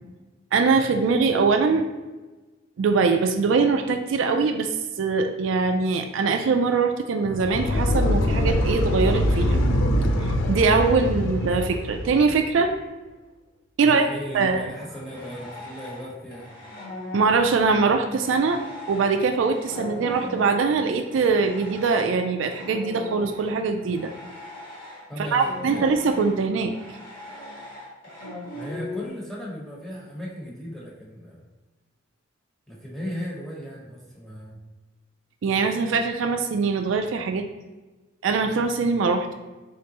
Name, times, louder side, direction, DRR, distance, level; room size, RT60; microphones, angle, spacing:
voice 1, 0.5-1.8 2.8-4.7 5.0-9.6 10.2-12.7 13.8-14.1 14.3-14.7 17.1-18.6 18.9-24.1 25.3-26.7 35.4-37.4 38.2-39.3, right 4 dB, 70° right, 5 dB, 0.3 m, -22 dB
sound 1, 7.2-12.4, equal, 80° left, 0.5 m, -23 dB
voice 2, 13.8-16.5 25.1-25.9 28.5-31.4 32.7-34.6, equal, ahead, -6 dB, 1.0 m, -36 dB
sound 2, 14.3-16.1 16.3-29.1, left 1 dB, 50° left, 1.4 m, -39 dB
3.8 x 3.3 x 2.9 m, 1.2 s
head